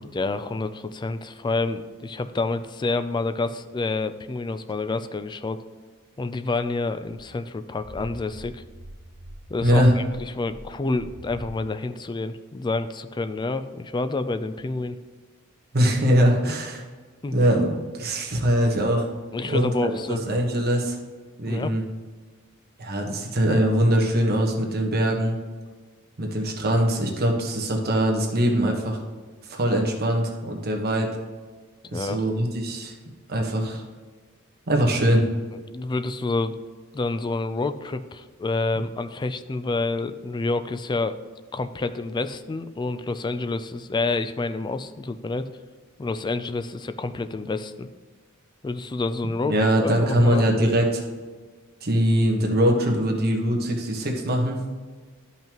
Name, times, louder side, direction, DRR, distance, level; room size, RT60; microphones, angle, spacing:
voice 1, 0.0-5.6 6.2-8.6 9.5-15.0 16.4-16.5 17.2-17.4 19.3-20.3 21.4-21.7 31.9-32.3 35.7-36.6 36.9-41.2 41.5-45.5 46.0-47.9 48.6-49.6 49.8-50.4, left 3 dB, 20° left, 11 dB, 0.3 m, -28 dB
sound 1, 7.1-11.6, right 1 dB, 30° right, 1.1 m, -43 dB
voice 2, 9.6-9.9 15.7-16.8 17.3-19.1 19.5-21.0 21.4-21.8 22.8-25.4 26.2-29.0 29.5-31.1 31.9-32.9 33.3-33.8 34.7-35.2 49.4-51.0 51.8-54.6, equal, 50° right, 1 dB, 1.3 m, -22 dB
12.0 x 5.5 x 3.0 m, 1.4 s
head